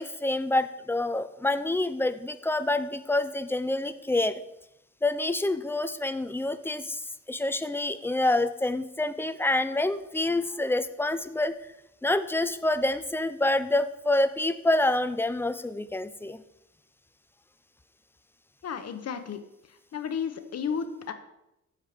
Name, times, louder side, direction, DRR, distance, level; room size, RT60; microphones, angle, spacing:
voice 1, 0.0-4.4 5.0-7.0 7.3-11.5 12.0-16.4, left 2 dB, 5° left, 12 dB, 0.5 m, -27 dB
voice 2, 18.6-19.4 19.7-21.1, left 7 dB, 55° left, 8 dB, 1.1 m, -33 dB
13.5 x 4.8 x 5.1 m, 0.87 s
cardioid pair, 120°, 30 cm